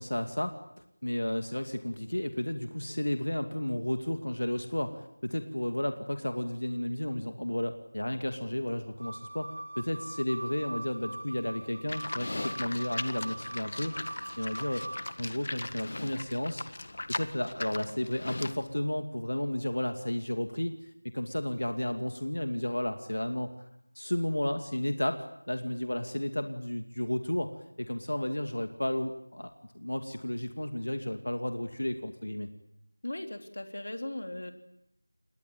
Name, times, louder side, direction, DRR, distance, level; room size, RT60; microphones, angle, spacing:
voice 1, 0.0-14.8 15.2-20.7 21.1-23.7 23.9-27.5 27.8-32.5, left 1 dB, 85° left, 7 dB, 2.5 m, -33 dB
sound 1, 9.0-15.0, right 1 dB, 75° right, 6.9 m, -42 dB
Livestock farm animals working animals, 11.9-18.6, left 2 dB, 40° left, 1.7 m, -39 dB
voice 2, 33.0-34.5, left 1 dB, 60° left, 6 dB, 3.4 m, -38 dB
29.0 x 21.5 x 8.8 m, 0.76 s
figure-of-eight pair, 175°, 0 cm